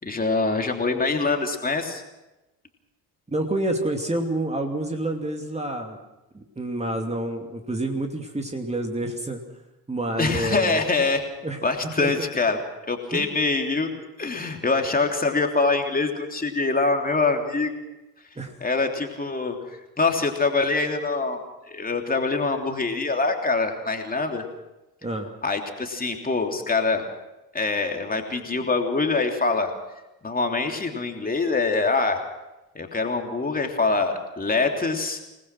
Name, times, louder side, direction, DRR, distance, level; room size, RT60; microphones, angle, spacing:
voice 1, 0.0-2.0 10.2-11.3 11.6-12.6 12.9-13.9 14.2-17.8 18.6-21.4 21.7-24.4 25.4-27.0 27.5-29.7 30.2-32.2 32.7-35.2, left 3 dB, 20° left, 3 dB, 3.1 m, -24 dB
voice 2, 3.3-6.0 6.3-9.4 9.9-10.8 11.4-11.6 12.0-12.1 13.1-13.3 18.4-18.5 25.0-25.3, right 1 dB, 15° right, 3 dB, 2.7 m, -28 dB
27.5 x 20.0 x 6.1 m, 1.0 s
figure-of-eight pair, 55°, 47 cm